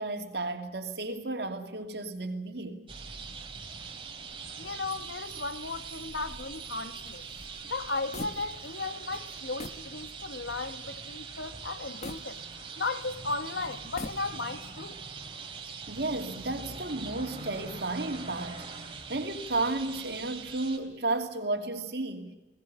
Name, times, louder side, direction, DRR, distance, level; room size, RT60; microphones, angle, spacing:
voice 1, 0.0-2.8 15.9-18.6 19.1-22.3, right 2 dB, 65° right, 2.8 m, -33 dB
sound 1, 2.9-20.8, right 5 dB, 30° right, 3.6 m, -42 dB
voice 2, 4.6-7.2 7.7-15.0, left 3 dB, 90° left, 1.5 m, -36 dB
sound 2, 6.0-8.8 9.1-9.3 9.6-9.9 10.4-10.5 12.0-13.0 13.8-14.6, left 2 dB, 40° left, 1.3 m, -44 dB
22.0 x 19.0 x 8.7 m
head